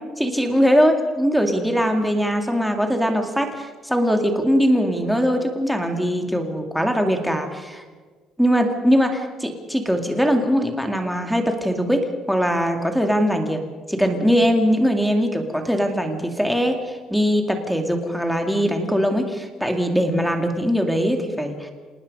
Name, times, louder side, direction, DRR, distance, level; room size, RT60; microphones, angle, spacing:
voice 1, 0.2-7.8 8.4-13.6 13.9-21.7, equal, ahead, 4 dB, 2.2 m, -21 dB
27.0 x 19.0 x 5.4 m, 1.4 s
cardioid pair, 150°, 0 cm